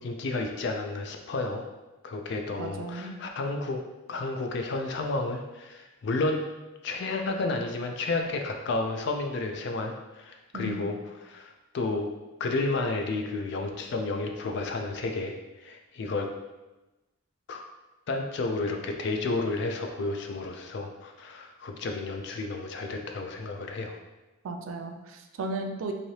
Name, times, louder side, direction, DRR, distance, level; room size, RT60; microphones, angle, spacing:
voice 1, 0.0-1.6 2.0-3.8 4.1-6.4 6.8-12.1 12.4-16.3 17.5-17.6 18.1-24.0, left 3 dB, 55° left, 3 dB, 0.3 m, -31 dB
voice 2, 2.6-3.2 10.5-10.9 24.4-25.9, right 2 dB, 75° right, 4 dB, 0.4 m, -35 dB
3.1 x 2.7 x 2.7 m, 1.1 s
head